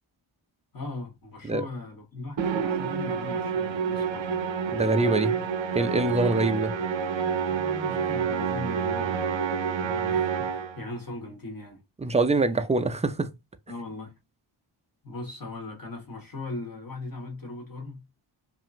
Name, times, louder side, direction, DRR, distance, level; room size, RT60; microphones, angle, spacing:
voice 1, 0.7-4.4 7.5-11.8 13.7-14.2 15.0-18.1, left 2 dB, 45° left, 1.4 m, -39 dB
Musical instrument, 2.4-10.9, right 6 dB, 65° right, 0.6 m, -28 dB
voice 2, 4.7-5.4 5.7-6.8 12.0-13.3, right 3 dB, 15° right, 0.3 m, -24 dB
2.8 x 2.5 x 2.4 m
cardioid pair, 45°, 48 cm